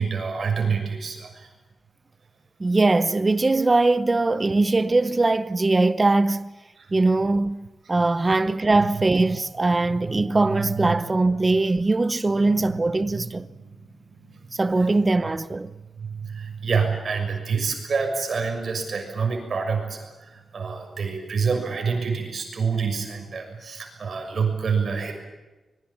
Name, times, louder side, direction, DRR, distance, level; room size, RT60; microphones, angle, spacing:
voice 1, 0.0-1.5 6.8-6.9 9.0-9.1 9.8-11.1 11.4-11.5 12.3-12.8 13.1-14.9 15.9-25.1, right 5 dB, 45° right, 6.4 m, -28 dB
voice 2, 2.6-6.5 6.9-13.5 14.5-15.7, right 2 dB, 20° right, 0.8 m, -21 dB
25.0 x 22.0 x 8.5 m
wide cardioid pair, 170°, 0 cm